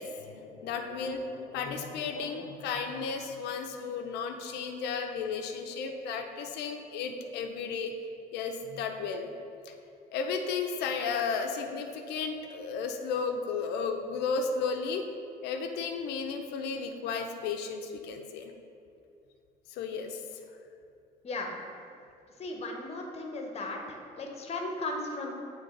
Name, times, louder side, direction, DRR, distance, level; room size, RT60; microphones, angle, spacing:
voice 1, 0.0-7.9 8.3-9.3 9.7-9.8 10.1-15.0 15.4-18.5 19.7-20.2, left 5 dB, 80° left, 4 dB, 0.5 m, -34 dB
voice 2, 21.2-21.5 22.4-25.3, left 2 dB, 40° left, 2 dB, 0.9 m, -36 dB
8.3 x 3.3 x 3.8 m, 2.5 s
cardioid pair, 110°, 17 cm